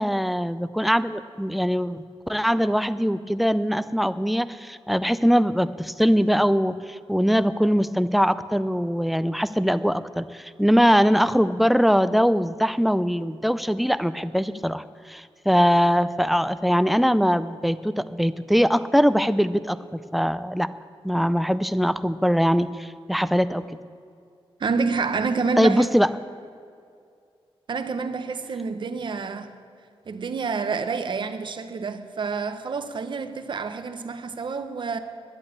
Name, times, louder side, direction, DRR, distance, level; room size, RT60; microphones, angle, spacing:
voice 1, 0.0-19.8 20.1-20.7 21.0-23.6 25.6-26.1, equal, ahead, 0.4 m, -22 dB
voice 2, 24.6-25.9 27.7-29.5 30.1-35.0, right 4 dB, 55° right, 0.9 m, -28 dB
10.5 x 10.5 x 8.8 m
wide cardioid pair, 160°, 10 cm